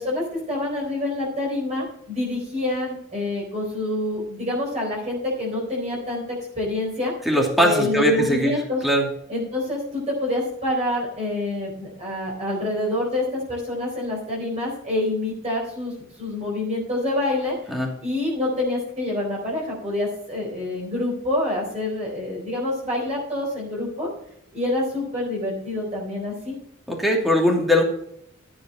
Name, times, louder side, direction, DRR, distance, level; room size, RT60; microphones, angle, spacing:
voice 1, 0.0-7.1 7.6-8.8 9.3-15.9 16.2-24.1 24.5-26.6, left 1 dB, 30° right, -4 dB, 4.2 m, -27 dB
voice 2, 7.3-9.1 17.7-17.9 26.9-27.8, equal, ahead, 0 dB, 2.7 m, -20 dB
13.5 x 8.5 x 4.3 m, 0.72 s
head